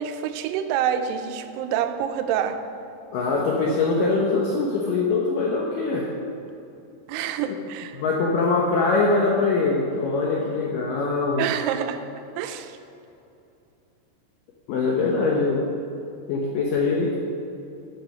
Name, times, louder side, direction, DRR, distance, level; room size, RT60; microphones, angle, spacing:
voice 1, 0.0-2.6 7.1-8.0 11.4-12.0 12.4-12.8, right 9 dB, 90° right, 8 dB, 2.7 m, -27 dB
voice 2, 3.1-6.1 7.5-7.6 7.9-11.5 14.7-15.6 16.3-17.2, left 3 dB, 70° left, -2 dB, 2.3 m, -23 dB
12.5 x 7.4 x 5.9 m, 2.8 s
omnidirectional pair, 4.6 m